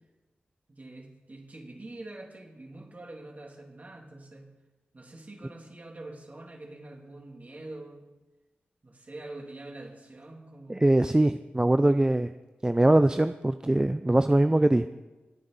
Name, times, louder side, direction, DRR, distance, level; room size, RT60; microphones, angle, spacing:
voice 1, 0.7-4.5 4.9-8.0 8.8-10.9, right 2 dB, 40° right, 1 dB, 2.9 m, -45 dB
voice 2, 10.7-12.3 12.6-14.9, right 1 dB, 20° right, 10 dB, 0.4 m, -22 dB
20.5 x 9.7 x 4.1 m, 1.1 s
cardioid pair, 50°, 4 cm